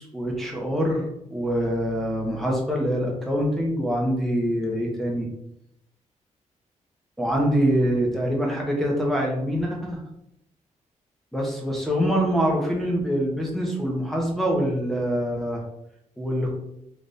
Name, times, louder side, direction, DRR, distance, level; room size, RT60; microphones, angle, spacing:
voice 1, 0.0-5.3 7.2-10.0 11.3-15.6 16.2-16.5, equal, ahead, -1 dB, 0.8 m, -25 dB
3.4 x 2.4 x 4.0 m, 0.80 s
wide cardioid pair, 165°, 13 cm